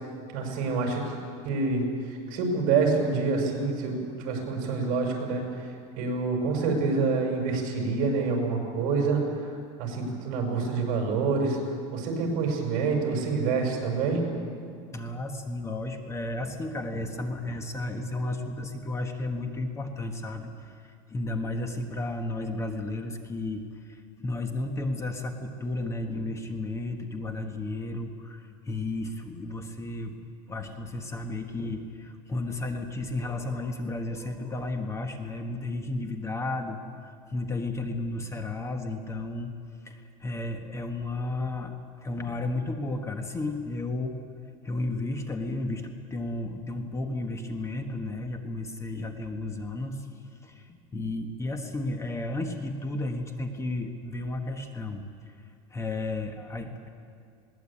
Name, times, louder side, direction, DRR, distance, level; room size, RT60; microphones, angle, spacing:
voice 1, 0.3-1.0 1.4-11.6 11.9-14.2, right 4 dB, 55° right, 2 dB, 6.3 m, -27 dB
voice 2, 14.9-30.2 30.5-39.5 39.8-41.8 42.0-44.2 44.6-50.1 50.4-55.3 55.7-56.9, left 2 dB, 15° left, 6 dB, 1.3 m, -33 dB
21.0 x 17.5 x 8.7 m, 2.2 s
cardioid pair, 150°, 18 cm